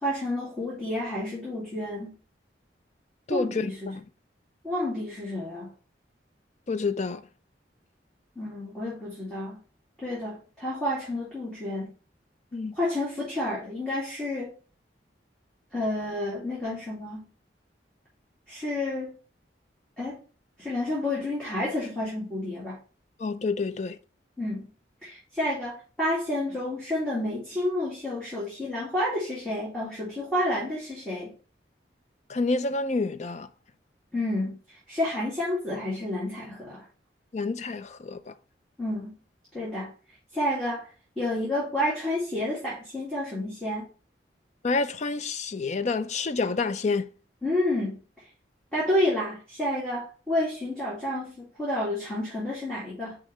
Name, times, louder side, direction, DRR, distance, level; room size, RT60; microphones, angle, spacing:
voice 1, 0.0-2.1 3.3-3.9 4.6-5.7 8.4-9.6 10.0-11.9 12.8-14.5 15.7-17.3 18.5-19.1 20.0-20.2 20.6-22.8 24.4-24.7 25.0-31.3 34.1-34.6 34.9-36.8 38.8-39.1 39.5-39.9 40.3-40.9 41.2-43.8 47.4-48.0 48.7-53.2, left 1 dB, 5° left, 2.2 m, -30 dB
voice 2, 3.3-4.0 6.7-7.2 12.5-12.7 23.2-24.0 32.3-33.5 37.3-38.3 44.6-47.1, left 3 dB, 40° left, 0.4 m, -28 dB
6.4 x 4.9 x 3.2 m
head